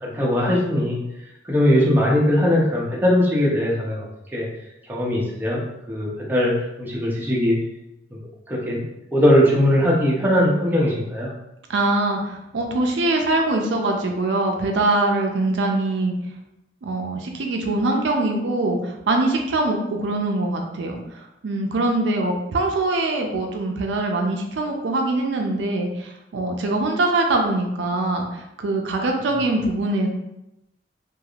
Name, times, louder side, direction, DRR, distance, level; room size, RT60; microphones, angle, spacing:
voice 1, 0.0-1.0 1.4-4.1 4.3-4.5 4.9-5.6 5.9-7.6 8.1-8.2 8.5-8.8 9.1-11.3, left 1 dB, 10° right, -5 dB, 0.6 m, -20 dB
voice 2, 11.7-16.1 16.8-30.1, right 2 dB, 75° right, 2 dB, 0.4 m, -23 dB
3.2 x 2.4 x 2.4 m, 0.88 s
head